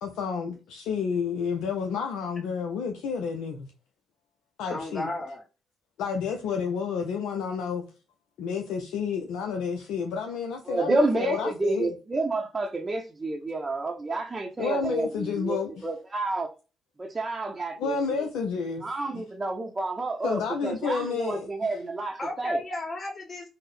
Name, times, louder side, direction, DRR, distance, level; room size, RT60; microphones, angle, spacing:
voice 1, 0.0-3.7 4.6-5.1 6.0-7.8 8.4-11.9 14.6-15.8 17.8-18.8 19.1-19.2 20.2-21.5, left 5 dB, 75° left, 0.4 m, -30 dB
voice 2, 4.7-5.4 22.2-23.5, left 1 dB, 35° left, 1.5 m, -33 dB
voice 3, 10.7-16.5 17.0-18.2 18.8-22.6, right 2 dB, 30° right, 0.6 m, -30 dB
3.6 x 2.0 x 3.1 m
hypercardioid pair, 50°, 0 cm